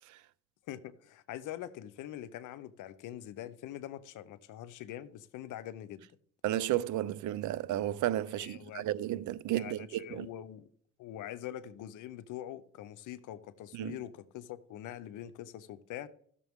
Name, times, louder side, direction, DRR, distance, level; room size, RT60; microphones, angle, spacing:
voice 1, 0.7-6.1 8.3-8.8 9.6-10.7 11.0-16.1, left 12 dB, 85° left, 0.8 m, -44 dB
voice 2, 6.4-10.3 13.7-14.0, right 13 dB, 75° right, 0.5 m, -33 dB
16.0 x 6.8 x 3.6 m
cardioid pair, 90°, 30 cm